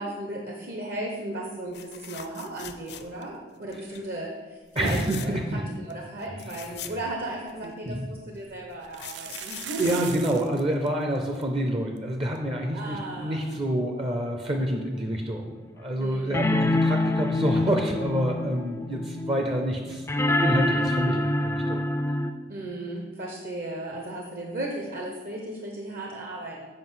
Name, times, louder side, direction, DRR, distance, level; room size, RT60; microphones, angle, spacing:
voice 1, 0.0-10.0 12.7-13.5 16.0-16.8 22.5-26.7, right 1 dB, 50° right, 0 dB, 0.9 m, -35 dB
sound 1, 1.7-3.4 3.7-4.0 4.7-5.5 5.9-6.0 6.2-7.7 8.5-11.0 12.9-13.1 13.4-13.5, left 10 dB, 65° left, 0.5 m, -42 dB
voice 2, 4.8-5.6 6.6-6.7 7.6-8.1 9.8-20.1 20.4-21.8, right 1 dB, 30° right, 2 dB, 0.6 m, -28 dB
sound 2, 7.2-7.3 7.6-7.7 8.8-10.6 10.9-11.0 11.2-11.4 12.0-12.1 12.4-12.5 14.5-14.6, right 9 dB, 80° right, 0.5 m, -39 dB
sound 3, 14.7-14.8 16.3-22.3, left 1 dB, 15° left, 0.3 m, -26 dB
7.7 x 5.0 x 5.6 m, 1.4 s
head